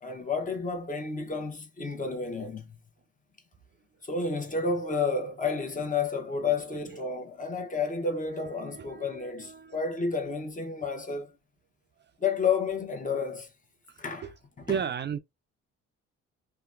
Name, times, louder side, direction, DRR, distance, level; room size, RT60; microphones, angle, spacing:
voice 1, 0.0-2.8 4.0-11.3 12.2-13.5 14.0-14.3 14.6-14.8, left 4 dB, 25° left, 0.9 m, -31 dB
voice 2, 8.2-9.8 13.9-14.3 14.7-15.2, right 8 dB, 35° right, 0.4 m, -35 dB
2.8 x 2.2 x 2.4 m
cardioid pair, 90°, 30 cm